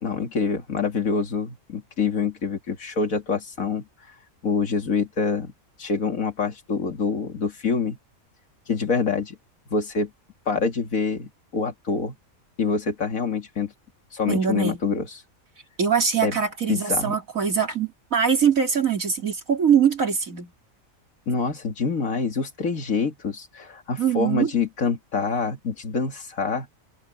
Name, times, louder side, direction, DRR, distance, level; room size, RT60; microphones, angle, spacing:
voice 1, 0.0-3.8 4.4-5.5 5.8-8.0 8.7-9.4 9.7-10.1 10.5-12.2 12.6-13.7 14.1-15.1 16.2-16.4 16.7-17.2 21.3-26.7, left 5 dB, 80° left, 2.6 m, -26 dB
voice 2, 14.3-14.8 15.8-20.5 24.0-24.5, right 7 dB, 85° right, 3.4 m, -22 dB
omnidirectional pair, 1.4 m